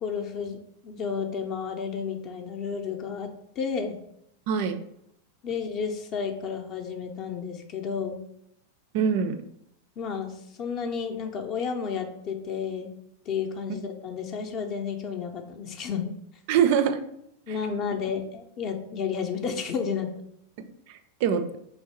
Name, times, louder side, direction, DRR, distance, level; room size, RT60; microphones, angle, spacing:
voice 1, 0.0-3.3 3.6-4.0 5.4-8.2 10.0-10.3 10.6-12.9 13.3-16.1 17.5-20.1, left 6 dB, 35° left, 5 dB, 0.5 m, -31 dB
voice 2, 4.5-4.8 8.9-9.4 16.5-17.0 17.5-17.6 20.9-21.6, right 7 dB, 50° right, 9 dB, 0.3 m, -24 dB
3.2 x 2.6 x 4.4 m, 0.76 s
figure-of-eight pair, 90°, 0 cm